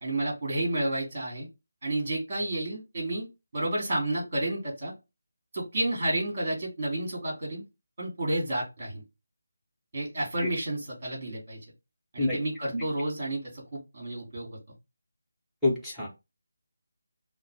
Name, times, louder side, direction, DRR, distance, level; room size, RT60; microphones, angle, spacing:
voice 1, 0.0-1.5 1.8-3.3 3.5-4.9 5.5-7.6 8.0-9.0 9.9-11.6 12.1-14.5, right 1 dB, 35° right, -2 dB, 2.4 m, -31 dB
voice 2, 15.6-16.1, left 2 dB, ahead, -8 dB, 1.0 m, -27 dB
5.5 x 2.1 x 3.4 m, 0.25 s
figure-of-eight pair, 155°, 0 cm